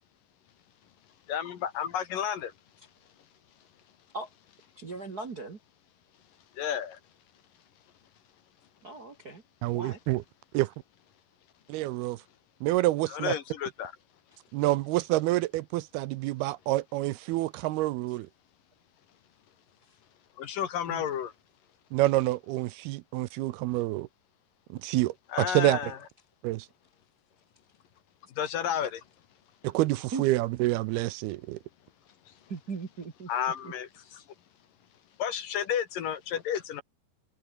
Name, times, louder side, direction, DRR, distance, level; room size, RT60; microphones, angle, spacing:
voice 1, 1.3-2.5 6.5-7.0 13.1-13.9 20.4-21.3 25.3-26.0 28.4-29.0 32.3-32.4 33.3-34.2 35.2-36.8, left 9 dB, 60° left, 3.2 m, -32 dB
voice 2, 4.7-5.6 8.8-9.4 9.7-10.0 14.3-14.4 19.8-20.0 20.9-21.0 30.1-30.2 32.5-33.3 33.6-33.7 34.0-34.3, right 4 dB, 40° right, 1.4 m, -39 dB
voice 3, 9.6-10.2 10.5-10.7 11.7-12.2 12.6-13.4 14.5-18.3 21.9-24.1 24.8-25.8 26.4-26.7 29.6-31.6, right 17 dB, 80° right, 2.6 m, -27 dB
omnidirectional pair, 4.7 m